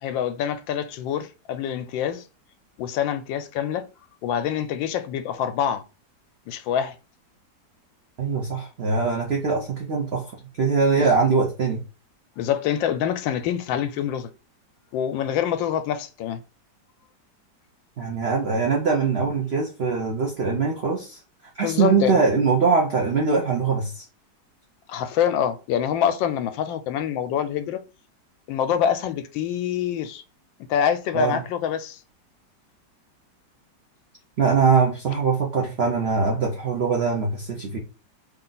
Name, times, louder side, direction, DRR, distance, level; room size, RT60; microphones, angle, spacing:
voice 1, 0.0-2.2 2.8-3.9 4.2-5.8 6.5-6.9 12.4-14.3 14.9-16.4 21.6-22.2 24.9-27.8 28.5-30.2 30.7-32.0, left 9 dB, 90° left, 1.3 m, -25 dB
voice 2, 8.2-10.3 10.6-11.8 18.0-21.2 21.6-24.0 31.1-31.4 34.4-37.8, right 5 dB, 60° right, 0.7 m, -22 dB
3.3 x 2.5 x 3.8 m
omnidirectional pair, 2.0 m